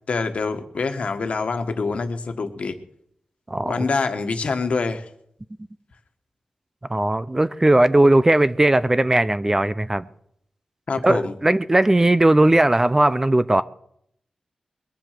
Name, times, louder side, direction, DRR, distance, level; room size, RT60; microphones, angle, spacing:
voice 1, 0.1-2.7 3.6-5.1 10.9-11.3, left 4 dB, 65° left, 1.4 m, -25 dB
voice 2, 3.5-3.8 6.9-10.1 11.0-13.6, right 1 dB, 20° right, 0.6 m, -18 dB
21.5 x 7.5 x 6.6 m
cardioid pair, 65°, 2 cm